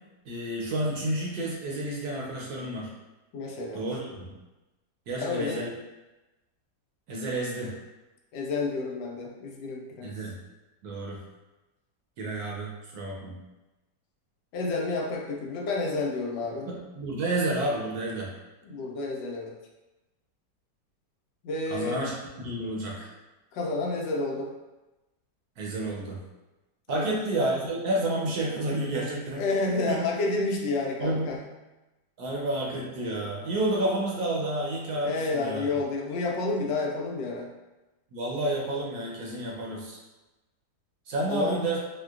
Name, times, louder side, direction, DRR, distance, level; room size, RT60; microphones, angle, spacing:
voice 1, 0.3-2.9 3.7-4.3 5.1-5.7 7.1-7.8 10.0-10.4 10.8-11.2 12.2-13.4 16.7-18.3 21.7-22.1 22.4-23.1 25.6-26.2 26.9-29.4 29.9-30.0 31.0-31.3 32.2-35.6 38.1-40.0 41.1-41.8, right 1 dB, 70° right, -2 dB, 1.1 m, -30 dB
voice 2, 3.3-3.8 5.2-5.7 8.3-10.1 14.5-16.7 18.6-19.5 21.4-22.0 23.5-24.5 26.9-27.1 29.3-31.4 35.0-37.5 41.3-41.6, left 3 dB, 85° left, 0 dB, 1.3 m, -30 dB
4.3 x 2.1 x 2.4 m, 1.1 s
omnidirectional pair, 1.9 m